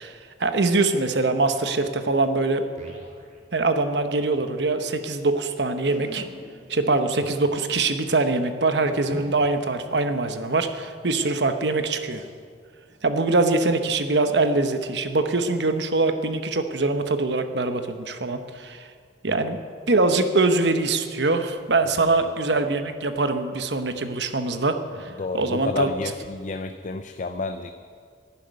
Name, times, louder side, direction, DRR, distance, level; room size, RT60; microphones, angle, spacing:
voice 1, 0.0-2.6 3.5-6.2 6.7-12.2 13.0-18.9 19.2-19.6 19.9-25.9, right 3 dB, 70° right, 8 dB, 1.1 m, -23 dB
sound 1, 2.8-4.5 4.8-4.9 5.0-5.2 5.8-10.9 11.3-11.6 12.0-12.3 12.8-13.1 13.6-13.7 14.4-14.5, right 1 dB, 45° right, 2.6 m, -45 dB
voice 2, 22.0-22.4 25.2-27.7, left 3 dB, 45° left, 8 dB, 0.5 m, -31 dB
12.0 x 10.5 x 9.4 m, 2.1 s
head